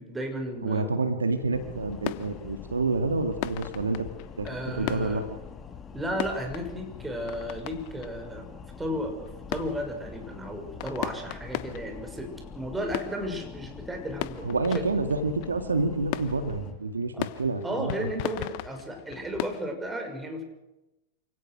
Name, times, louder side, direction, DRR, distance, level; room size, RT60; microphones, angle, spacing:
voice 1, 0.0-0.9 4.4-5.2 5.9-8.5 8.8-14.8 17.1-17.3 17.6-20.4, equal, 10° right, 5 dB, 6.0 m, -34 dB
voice 2, 0.6-4.1 4.4-4.5 4.7-5.3 14.4-18.1, right 3 dB, 85° right, 8 dB, 2.1 m, -28 dB
sound 1, 1.3-19.7, left 17 dB, 50° left, 1.1 m, -39 dB
sound 2, 1.5-16.7, left 6 dB, 20° left, 2.2 m, -44 dB
28.0 x 17.0 x 6.3 m, 0.93 s
figure-of-eight pair, 95°, 0 cm